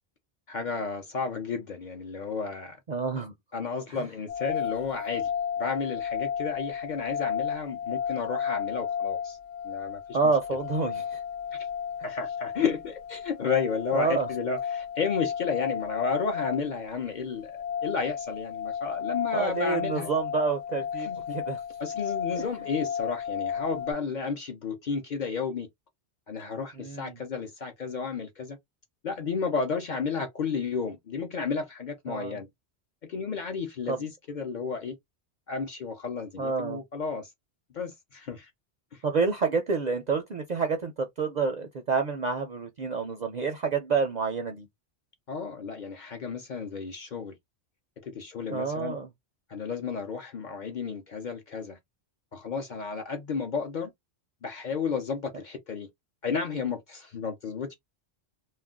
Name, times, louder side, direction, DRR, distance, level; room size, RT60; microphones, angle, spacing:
voice 1, 0.5-2.8 3.5-5.3 5.6-9.4 9.6-10.6 11.5-11.6 12.0-17.5 17.8-20.1 20.9-21.3 21.8-25.7 26.3-28.6 29.0-32.5 33.1-35.0 35.5-37.3 37.7-38.5 38.9-39.0 45.3-47.4 48.0-49.0 49.5-51.8 52.3-53.9 54.4-55.9 56.2-57.7, left 5 dB, 50° left, 0.6 m, -32 dB
voice 2, 2.9-3.3 3.9-4.0 10.1-11.2 13.9-14.3 19.3-21.6 22.4-22.5 26.8-27.2 32.1-32.4 33.9-34.1 36.4-36.8 39.0-44.7 48.5-49.1, right 4 dB, 55° right, 0.5 m, -28 dB
sound 1, 4.3-23.9, left 8 dB, 80° left, 0.9 m, -33 dB
2.4 x 2.1 x 3.5 m
omnidirectional pair, 1.2 m